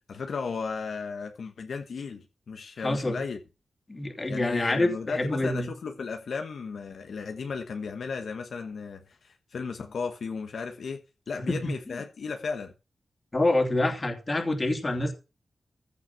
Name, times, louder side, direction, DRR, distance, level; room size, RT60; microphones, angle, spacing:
voice 1, 0.1-3.4 4.3-11.0 11.3-12.7, left 5 dB, 70° left, 1.2 m, -35 dB
voice 2, 2.8-3.2 3.9-5.7 11.5-11.7 13.3-15.1, left 2 dB, 25° left, 2.7 m, -26 dB
15.0 x 5.7 x 5.9 m
wide cardioid pair, 115°, 0 cm